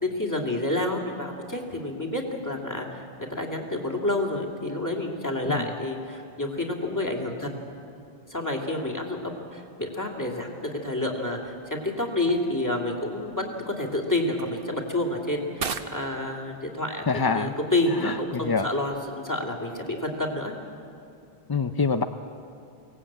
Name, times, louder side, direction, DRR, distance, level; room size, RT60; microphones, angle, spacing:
voice 1, 0.0-3.0 3.3-7.5 8.3-15.7 15.9-17.0 17.3-20.5, left 1 dB, 15° left, 0 dB, 2.6 m, -29 dB
sound 1, 12.3-20.5, right 5 dB, 60° right, 1.1 m, -43 dB
voice 2, 17.1-17.5 18.0-18.7 21.5-22.0, left 4 dB, 35° left, 8 dB, 0.4 m, -25 dB
23.5 x 18.0 x 8.8 m, 2.5 s
omnidirectional pair, 1.1 m